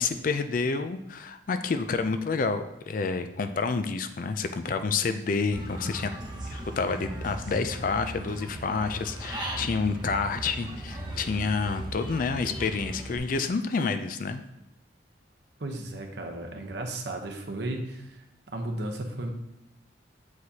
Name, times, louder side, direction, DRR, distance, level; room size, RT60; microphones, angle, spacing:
voice 1, 0.0-6.1 6.5-14.4, left 4 dB, 45° left, 9 dB, 0.4 m, -29 dB
Human voice / Bird, 5.5-13.2, right 1 dB, 25° right, 1.1 m, -37 dB
voice 2, 15.6-18.2 18.5-19.3, right 1 dB, 60° right, 3 dB, 0.9 m, -34 dB
7.7 x 4.7 x 2.8 m, 0.86 s
head